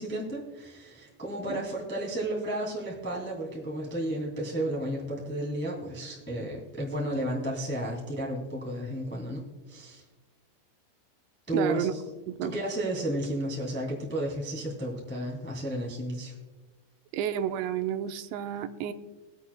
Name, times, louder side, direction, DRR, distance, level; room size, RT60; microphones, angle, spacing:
voice 1, 0.0-9.4 9.7-10.0 11.5-12.0 12.4-16.3, right 1 dB, 15° left, -4 dB, 0.4 m, -32 dB
voice 2, 11.5-11.9 12.3-12.5 17.1-18.9, right 10 dB, 85° right, 8 dB, 2.9 m, -31 dB
23.0 x 8.1 x 2.2 m, 1.3 s
omnidirectional pair, 5.1 m